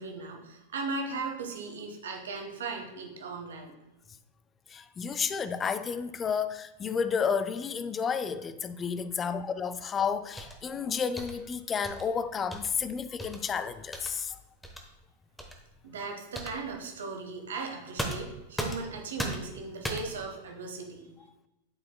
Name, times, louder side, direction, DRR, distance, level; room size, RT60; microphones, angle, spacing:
voice 1, 0.0-3.7 15.8-21.1, right 3 dB, 65° right, 1.2 m, -37 dB
voice 2, 4.7-14.4, left 6 dB, 20° left, 0.4 m, -31 dB
sound 1, 10.4-10.7 11.2-11.4 11.8-12.1 12.5-12.7 13.2-13.4 13.9-14.1 14.6-14.8 15.4-15.5 16.3-16.6 18.0-18.9 19.2-19.5 19.8-20.2, equal, 5° left, 1.0 m, -36 dB
11.5 x 4.7 x 2.2 m
figure-of-eight pair, 90°, 0 cm